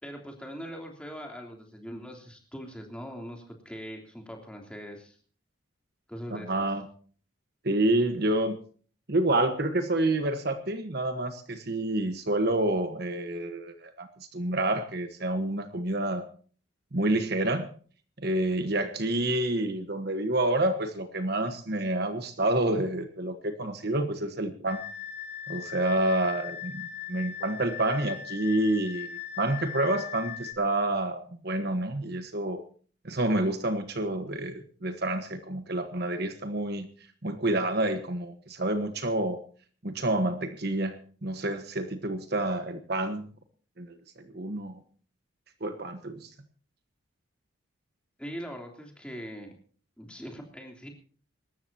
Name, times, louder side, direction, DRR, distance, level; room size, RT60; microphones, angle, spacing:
voice 1, 0.0-5.2 6.1-6.7 48.2-49.5 50.0-50.9, equal, 5° left, 1 dB, 3.2 m, -41 dB
voice 2, 6.3-6.8 7.6-8.6 9.1-16.2 16.9-17.7 18.2-24.8 25.5-29.1 29.4-32.6 33.0-36.9 37.2-39.4 39.8-43.3 43.8-44.8 45.6-46.3, right 1 dB, 50° right, 8 dB, 1.3 m, -28 dB
sound 1, 24.7-30.5, left 9 dB, 55° left, 2.3 m, -39 dB
25.5 x 13.5 x 2.9 m, 0.43 s
head